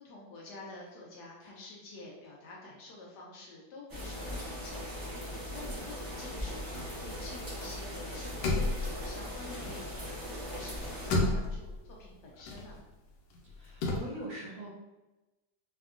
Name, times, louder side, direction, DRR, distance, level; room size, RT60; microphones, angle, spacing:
voice 1, 0.0-4.9 5.5-12.8, left 2 dB, 70° left, -3 dB, 1.1 m, -48 dB
sound 1, 3.9-11.1, equal, 25° right, 0.4 m, -40 dB
sound 2, 6.2-7.8 8.1-10.3 10.6-14.0, left 2 dB, 90° left, 1.3 m, -34 dB
voice 2, 13.5-14.7, right 1 dB, 65° right, -5 dB, 1.0 m, -42 dB
3.5 x 2.2 x 2.4 m, 1.1 s
omnidirectional pair, 2.1 m